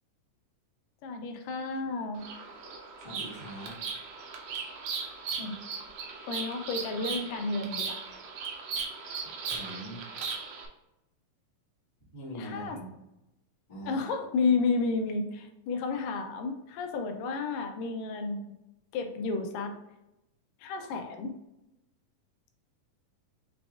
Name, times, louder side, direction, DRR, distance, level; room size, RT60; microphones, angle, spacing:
voice 1, 1.0-2.2 5.4-5.6 6.3-8.1 12.4-12.8 13.9-18.5 18.9-19.8 20.6-21.3, left 4 dB, 85° left, 5 dB, 2.3 m, -31 dB
Bird vocalization bird call bird song, 2.2-10.7, right 5 dB, 80° right, 1.5 m, -38 dB
voice 2, 3.0-3.7 9.5-10.0 12.1-12.9 13.7-14.0, equal, 50° left, -8 dB, 0.5 m, -42 dB
5.9 x 3.4 x 2.4 m, 0.90 s
omnidirectional pair, 3.9 m